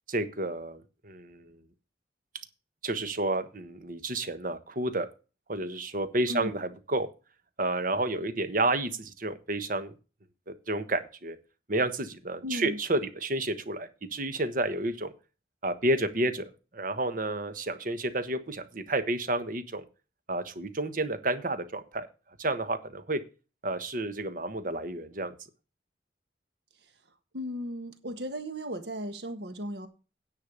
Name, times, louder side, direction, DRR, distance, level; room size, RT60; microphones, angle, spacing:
voice 1, 0.1-1.6 2.8-5.1 5.5-7.1 7.6-9.9 10.5-11.4 11.7-15.1 15.6-19.8 20.3-22.1 22.4-23.2 23.6-25.3, right 2 dB, 50° right, 1.3 m, -30 dB
voice 2, 12.4-12.8 27.3-29.9, equal, 70° right, 1.5 m, -36 dB
10.0 x 5.7 x 6.8 m
head